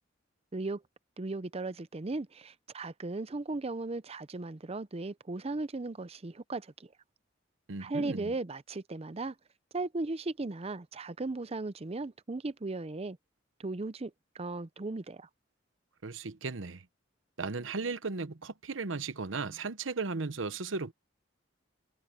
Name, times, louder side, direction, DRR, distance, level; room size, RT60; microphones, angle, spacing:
voice 1, 1.2-6.9 7.8-9.3 9.7-13.2 13.6-15.3, right 2 dB, 30° right, 0.6 m, -37 dB
voice 2, 7.7-8.3 16.0-16.8 17.4-20.9, right 4 dB, 85° right, 1.0 m, -36 dB
head